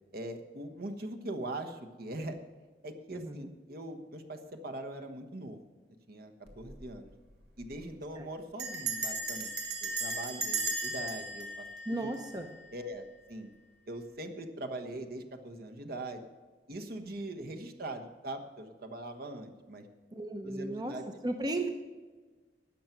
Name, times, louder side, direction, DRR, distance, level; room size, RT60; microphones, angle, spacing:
voice 1, 0.1-2.4 2.8-5.6 6.1-7.1 7.6-9.5 9.8-12.1 12.7-13.5 13.9-16.2 16.7-19.9 20.4-21.1, right 1 dB, 60° right, 5 dB, 1.2 m, -41 dB
voice 2, 3.1-3.5 8.2-8.3 11.9-12.5 20.1-21.0 21.2-21.7, right 2 dB, 25° right, 5 dB, 0.7 m, -35 dB
Bell, 6.5-6.8 7.1-7.2 7.4-7.8 8.6-12.7, right 3 dB, 75° right, 2.1 m, -36 dB
12.5 x 9.1 x 6.0 m, 1.4 s
head